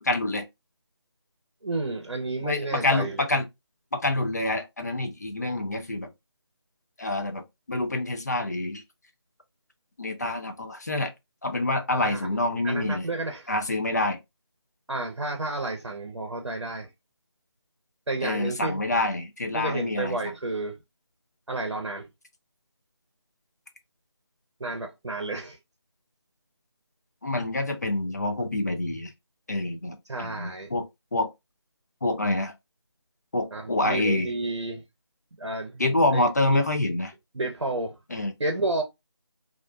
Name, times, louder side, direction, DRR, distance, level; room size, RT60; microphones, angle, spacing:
voice 1, 0.0-0.5 2.4-3.5 3.9-6.1 7.0-8.8 10.0-11.1 11.4-13.1 13.5-14.2 18.2-20.3 27.2-29.1 29.5-30.9 31.1-31.3 32.0-32.5 33.3-34.3 35.8-37.1 38.1-38.4, left 2 dB, 40° left, 0.4 m, -27 dB
voice 2, 1.6-3.2 12.0-12.3 12.6-13.5 14.9-16.9 18.1-18.8 19.5-20.8 21.5-22.1 24.6-25.6 30.1-30.7 33.5-34.8 35.4-35.8 36.1-36.2 36.5-36.6 37.3-37.9 38.4-38.8, right 2 dB, 75° right, 0.6 m, -31 dB
2.4 x 2.1 x 2.4 m
figure-of-eight pair, 165°, 14 cm